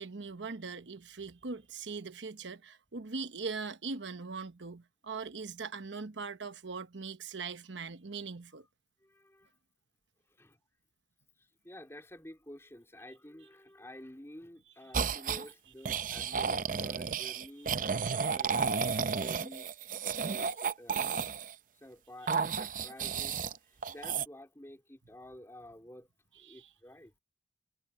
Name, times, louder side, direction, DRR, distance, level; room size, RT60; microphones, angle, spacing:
voice 1, 0.0-8.6 14.9-15.0 15.8-16.6 17.0-17.1 18.0-18.5 20.4-20.5 22.2-22.3 26.3-26.7, right 4 dB, 85° right, 1.0 m, -41 dB
voice 2, 9.0-9.5 10.4-10.6 11.6-17.8 18.3-19.7 20.2-21.3 21.8-26.1 26.4-27.1, left 1 dB, 15° left, 3.4 m, -51 dB
sound 1, 14.9-15.4 15.8-21.5 22.3-23.6 23.8-24.2, right 6 dB, 45° right, 0.6 m, -32 dB
head